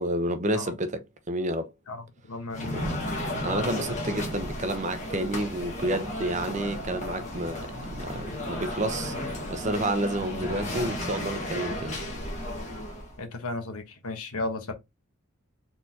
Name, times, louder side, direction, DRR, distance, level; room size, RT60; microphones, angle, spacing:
voice 1, 0.0-1.7 2.7-2.9 3.4-7.7 8.0-12.0, right 1 dB, 35° right, 0.7 m, -30 dB
voice 2, 1.9-3.0 13.2-14.7, left 2 dB, 90° left, 1.2 m, -35 dB
sound 1, 2.5-13.2, left 1 dB, 35° left, 1.6 m, -34 dB
4.5 x 3.9 x 2.8 m
head